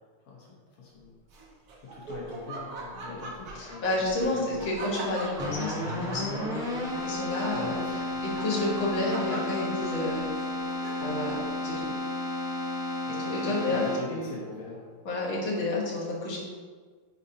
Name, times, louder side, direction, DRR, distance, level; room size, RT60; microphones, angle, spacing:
voice 1, 0.8-1.1 1.9-4.6 7.5-8.0 13.1-13.2 13.5-15.0, left 4 dB, 85° left, -4 dB, 2.1 m, -42 dB
Laughter, 1.3-11.3, right 2 dB, 55° right, 1.2 m, -42 dB
voice 2, 3.5-6.6 7.0-10.3 11.0-11.4 11.6-11.9 13.2-14.3 15.1-16.4, left 2 dB, 65° left, -5 dB, 2.2 m, -30 dB
Keyboard (musical), 5.4-14.4, left 1 dB, 5° right, 0.4 m, -33 dB
10.5 x 4.1 x 2.8 m, 1.5 s
omnidirectional pair, 2.3 m